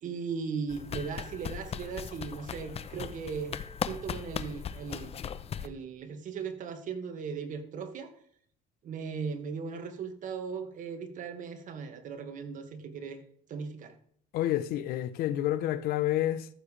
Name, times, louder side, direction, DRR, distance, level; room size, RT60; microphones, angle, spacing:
voice 1, 0.0-5.2 5.6-8.1 8.8-13.2 13.5-13.9, right 5 dB, 55° right, 2.0 m, -38 dB
sound 1, 0.7-5.7, left 8 dB, 40° left, 0.8 m, -38 dB
voice 2, 14.3-16.5, left 13 dB, 70° left, 0.9 m, -29 dB
14.5 x 7.2 x 3.3 m
cardioid pair, 100°, 16 cm